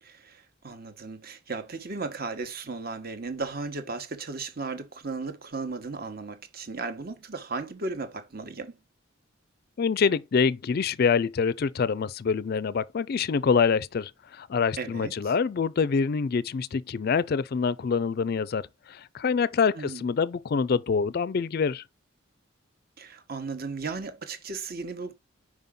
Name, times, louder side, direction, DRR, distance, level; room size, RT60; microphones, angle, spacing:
voice 1, 0.0-8.8 14.8-15.3 19.7-20.0 23.0-25.1, right 3 dB, 45° right, 1.1 m, -35 dB
voice 2, 9.8-21.8, left 5 dB, 50° left, 0.4 m, -26 dB
5.4 x 4.8 x 3.6 m
head